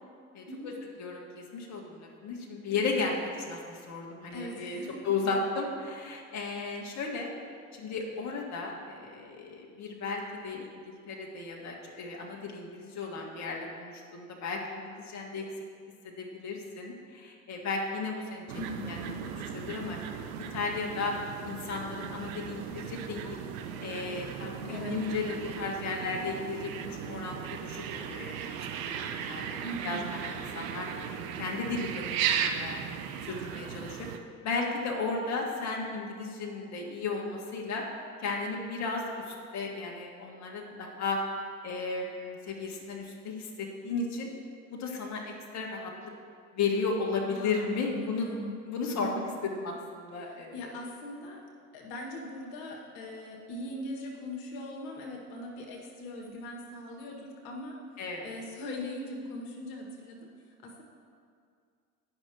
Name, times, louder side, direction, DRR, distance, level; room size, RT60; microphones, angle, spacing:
voice 1, 0.3-0.7 1.0-7.3 7.7-15.4 16.0-18.4 18.9-19.1 19.5-20.0 20.5-21.1 21.4-23.4 23.8-28.4 28.8-32.8 33.2-34.1 34.4-37.8 38.2-41.2 41.6-44.3 44.7-46.1 46.5-48.3 48.7-49.2 49.5-50.7 58.0-58.3, left 4 dB, 35° left, -1 dB, 1.5 m, -35 dB
voice 2, 2.7-3.0 4.3-5.0 18.5-19.4 24.6-25.0 29.6-30.1 47.3-49.2 50.2-51.4 51.7-57.8 58.2-60.3 60.6-60.8, left 1 dB, 65° left, 0 dB, 1.5 m, -40 dB
sound 1, 18.5-34.2, right 8 dB, 65° right, 0.8 m, -36 dB
9.5 x 5.9 x 4.7 m, 2.2 s
hypercardioid pair, 80°, 44 cm